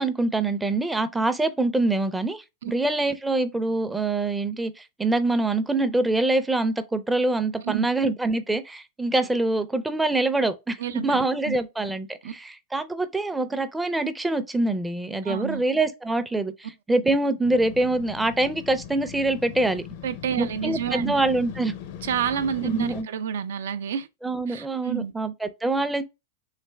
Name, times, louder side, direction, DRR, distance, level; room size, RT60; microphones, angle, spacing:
voice 1, 0.0-19.8 20.4-21.7 22.6-23.1 24.2-26.0, right 2 dB, 10° right, 0.4 m, -25 dB
voice 2, 10.8-11.5 12.2-12.3 15.2-15.6 20.0-21.1 22.0-24.1 24.5-25.1, right 8 dB, 80° right, 0.4 m, -29 dB
Motorcycle, 17.4-23.0, left 9 dB, 60° left, 0.5 m, -40 dB
3.3 x 3.1 x 3.2 m
hypercardioid pair, 120°, 0 cm